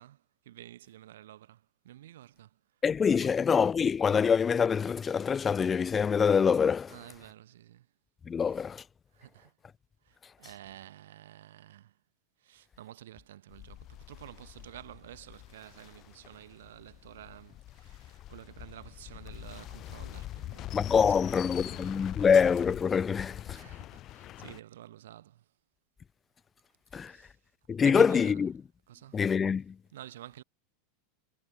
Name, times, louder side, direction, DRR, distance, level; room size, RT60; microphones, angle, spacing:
voice 1, 0.0-2.6 3.2-3.3 6.9-7.9 9.1-9.5 10.0-11.9 12.4-22.3 23.5-25.4 26.9-27.4 27.8-28.4 28.9-29.2 29.9-30.4, right 13 dB, 90° right, 3.6 m, -50 dB
voice 2, 2.8-6.9 8.3-8.8 20.7-23.6 26.9-27.1 27.7-28.5 29.1-29.7, left 6 dB, 15° left, 1.0 m, -25 dB
sound 1, 13.5-24.6, left 14 dB, 30° left, 1.9 m, -44 dB
supercardioid pair, 160°, 0 cm